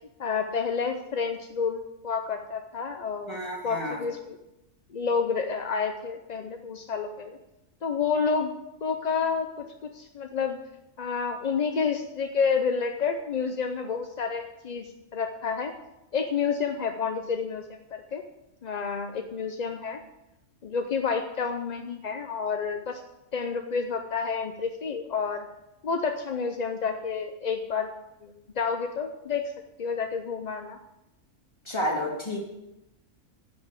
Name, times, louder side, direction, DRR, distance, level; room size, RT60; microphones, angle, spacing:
voice 1, 0.2-4.4 4.9-7.4 7.8-8.5 8.8-10.6 11.0-15.7 16.1-18.2 18.6-20.0 20.6-23.0 23.3-25.5 25.8-27.9 28.2-29.4 29.8-30.8, left 5 dB, 45° left, 5 dB, 0.5 m, -29 dB
voice 2, 3.3-4.0 31.7-32.4, equal, 20° left, -2 dB, 2.6 m, -30 dB
10.5 x 6.1 x 8.3 m, 0.93 s
omnidirectional pair, 1.4 m